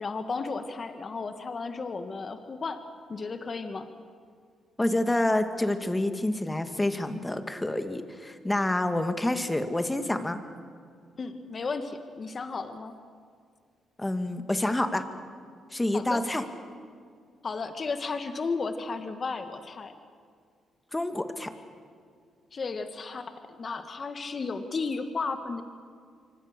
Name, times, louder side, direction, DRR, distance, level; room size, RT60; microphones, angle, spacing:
voice 1, 0.0-2.8 3.1-3.9 11.2-12.9 15.9-16.2 17.4-19.9 22.5-25.6, left 4 dB, 40° left, 8 dB, 1.6 m, -34 dB
voice 2, 4.8-10.4 14.0-15.0 15.7-16.4 20.9-21.5, left 1 dB, 15° left, 8 dB, 1.9 m, -28 dB
26.5 x 24.5 x 6.8 m, 2.1 s
cardioid pair, 90°, 0 cm